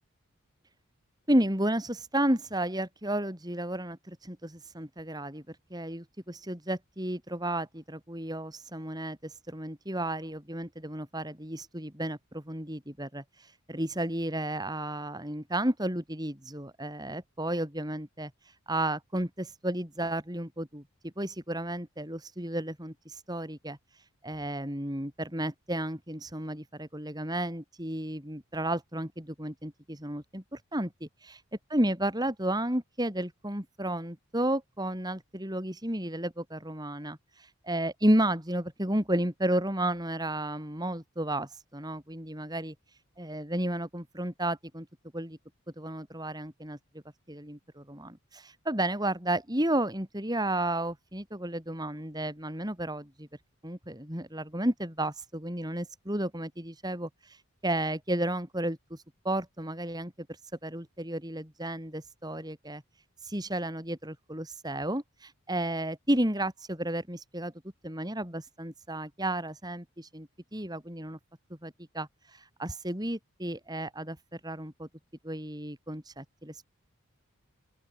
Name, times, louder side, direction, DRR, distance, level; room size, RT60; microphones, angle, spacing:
voice 1, 1.3-31.4 31.7-42.7 43.2-44.9 45.1-45.4 45.8-46.8 47.3-53.3 53.6-60.1 60.6-62.8 63.2-67.5 67.8-71.2 71.6-74.9 75.2-76.6, right 1 dB, 20° right, 5.0 m, -32 dB
open air
head